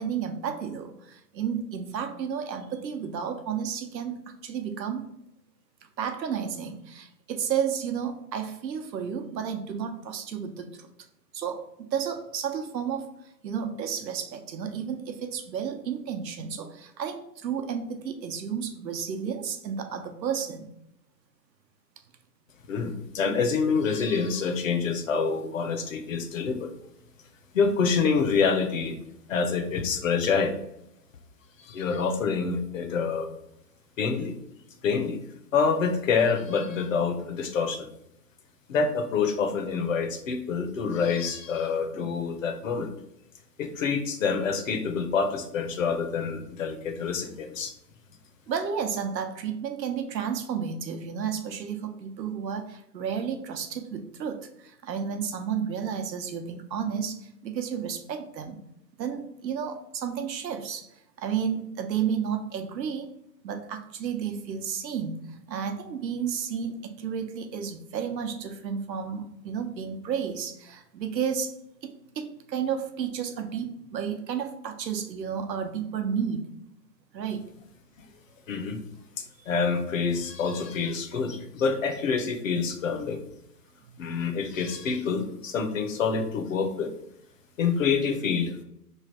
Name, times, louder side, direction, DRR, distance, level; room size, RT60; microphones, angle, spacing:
voice 1, 0.0-5.0 6.0-10.9 11.3-13.1 13.4-20.7 41.9-42.1 48.5-58.6 59.0-60.9 61.2-63.1 63.4-71.5 71.8-76.5 77.1-77.4, right 7 dB, 85° right, 6 dB, 0.8 m, -32 dB
voice 2, 22.7-26.7 27.5-29.0 29.3-30.6 31.6-33.3 34.0-34.3 34.8-35.2 35.5-37.9 38.7-42.9 43.6-47.7 78.5-78.8 79.5-83.2 84.0-86.9 87.6-88.6, left 5 dB, 50° left, 5 dB, 0.6 m, -27 dB
3.1 x 2.4 x 4.2 m, 0.79 s
hypercardioid pair, 165°, 50 cm